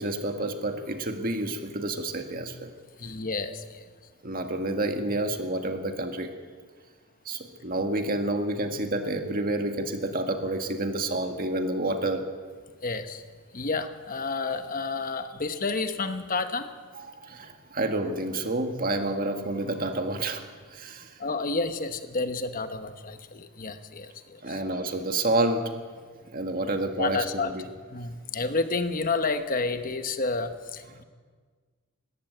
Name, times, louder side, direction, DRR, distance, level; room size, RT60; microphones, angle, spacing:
voice 1, 0.0-2.7 4.2-6.3 7.3-12.3 17.0-20.4 20.7-21.2 24.4-25.8 26.3-27.7, right 2 dB, 45° right, 5 dB, 1.8 m, -29 dB
voice 2, 3.0-3.8 12.8-13.2 13.5-16.7 21.2-24.6 27.0-27.5 27.9-31.0, left 3 dB, 40° left, 9 dB, 1.1 m, -30 dB
20.0 x 16.5 x 8.0 m, 1.5 s
head